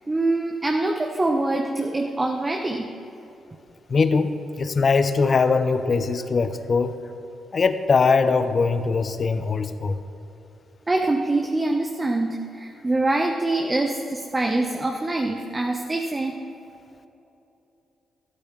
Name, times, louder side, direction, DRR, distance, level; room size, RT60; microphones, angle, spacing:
voice 1, 0.1-2.9 10.9-16.4, right 2 dB, 25° right, 3 dB, 0.9 m, -24 dB
voice 2, 3.9-4.3 4.6-7.0 7.5-10.0, left 4 dB, 50° left, 11 dB, 0.7 m, -21 dB
13.0 x 12.0 x 3.2 m, 2.9 s
hypercardioid pair, 40°, 0 cm